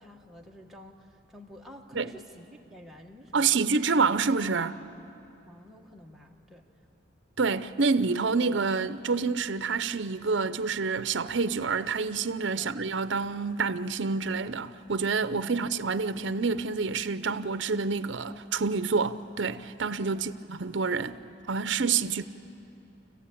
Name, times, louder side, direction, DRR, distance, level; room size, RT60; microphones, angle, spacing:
voice 1, 0.0-3.7 5.4-6.7 12.5-12.7 15.3-15.5 20.1-20.3, left 1 dB, ahead, 1.4 m, -50 dB
voice 2, 3.3-4.8 7.4-21.2 21.5-22.2, right 4 dB, 60° right, 0.7 m, -28 dB
28.0 x 15.5 x 8.5 m
head